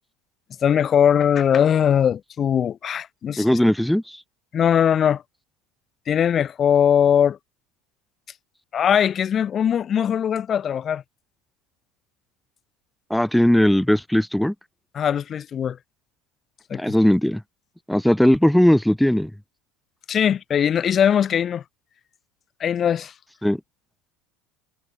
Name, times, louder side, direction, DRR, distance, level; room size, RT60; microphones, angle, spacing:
voice 1, 0.6-3.6 4.5-5.2 6.1-7.4 8.7-11.0 14.9-15.8 16.7-16.9 20.1-21.6 22.6-23.1, left 8 dB, 25° left, 1.1 m, -20 dB
voice 2, 3.4-4.0 13.1-14.5 16.7-17.4 17.9-19.3 23.4-23.6, equal, ahead, 1.4 m, -18 dB
cardioid pair, 160°, 0 cm